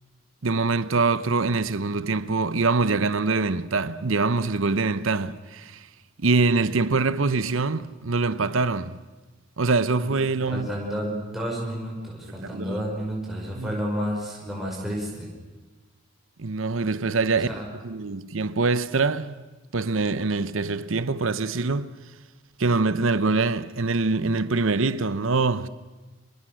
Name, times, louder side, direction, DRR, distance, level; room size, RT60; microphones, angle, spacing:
voice 1, 0.4-5.9 6.2-9.0 9.6-10.7 12.4-12.8 13.5-13.8 16.4-17.5 17.8-21.9 22.6-25.7, right 3 dB, 75° right, 0.8 m, -24 dB
voice 2, 10.5-15.3 17.3-17.7, equal, ahead, 5.4 m, -31 dB
26.0 x 25.0 x 6.4 m
head